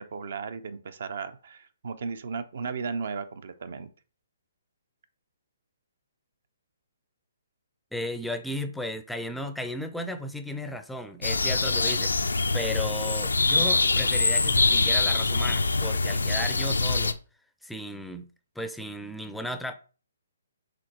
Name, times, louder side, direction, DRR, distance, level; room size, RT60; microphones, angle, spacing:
voice 1, 0.0-3.9, right 5 dB, 60° right, 0.5 m, -35 dB
voice 2, 7.9-12.1 12.5-17.2 17.6-18.3 18.6-19.7, left 1 dB, ahead, 0.4 m, -35 dB
sound 1, 11.2-17.1, left 3 dB, 80° left, 0.3 m, -24 dB
5.0 x 3.5 x 2.9 m
figure-of-eight pair, 135°, 0 cm